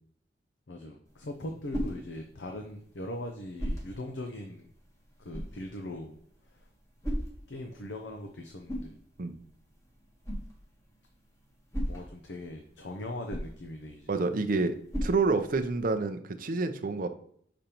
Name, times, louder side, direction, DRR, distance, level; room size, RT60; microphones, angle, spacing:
voice 1, 0.7-4.7 5.2-6.2 7.5-9.0 11.8-14.1, left 1 dB, 75° left, 4 dB, 0.6 m, -40 dB
sound 1, 1.1-16.0, equal, 20° left, 1.3 m, -40 dB
voice 2, 14.1-14.7 15.0-17.1, right 3 dB, 50° right, 7 dB, 0.6 m, -28 dB
6.8 x 5.2 x 2.9 m, 0.64 s
head